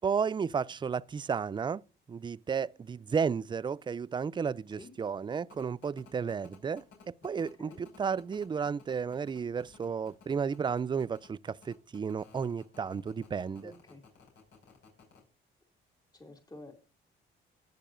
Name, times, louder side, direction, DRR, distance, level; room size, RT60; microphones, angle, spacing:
voice 1, 0.0-1.8 2.1-13.7, right 6 dB, 25° right, 0.4 m, -33 dB
sound 1, 5.5-15.2, left 5 dB, 70° left, 5.7 m, -56 dB
voice 2, 13.6-14.0 16.1-16.7, left 2 dB, 20° left, 2.7 m, -49 dB
18.0 x 6.8 x 2.6 m
cardioid pair, 90°, 20 cm